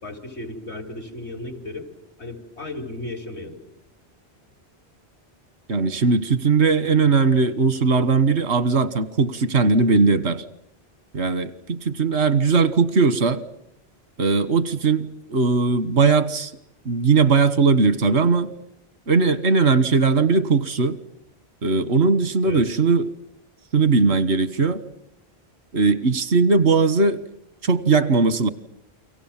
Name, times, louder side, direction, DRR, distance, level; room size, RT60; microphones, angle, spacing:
voice 1, 0.0-1.9 2.2-3.6 22.4-22.6, left 2 dB, 85° left, 5 dB, 4.0 m, -34 dB
voice 2, 5.7-10.4 11.1-13.4 14.2-16.5 16.8-18.5 19.1-21.0 21.6-23.1 23.7-24.8 25.7-27.2 27.6-28.5, right 4 dB, 85° right, 14 dB, 1.6 m, -19 dB
29.5 x 24.0 x 7.4 m, 0.82 s
omnidirectional pair, 1.1 m